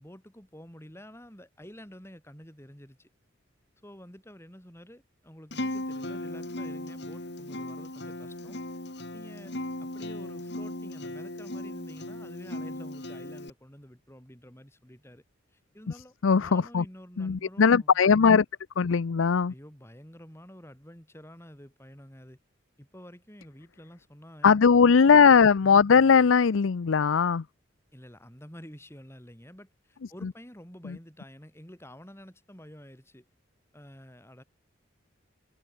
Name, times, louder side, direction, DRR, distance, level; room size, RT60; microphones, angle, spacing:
voice 1, 0.0-3.1 3.8-8.6 9.1-9.5 9.8-15.2 15.5-18.0 19.5-22.4 22.8-25.4 27.9-33.3 33.7-34.4, equal, 15° left, 6.2 m, -49 dB
Acoustic guitar, 5.5-13.5, left 1 dB, 60° left, 3.1 m, -37 dB
voice 2, 16.2-16.8 17.2-18.5 18.8-19.5 24.4-27.4 30.2-30.3 30.8-31.0, left 6 dB, 90° left, 0.5 m, -20 dB
head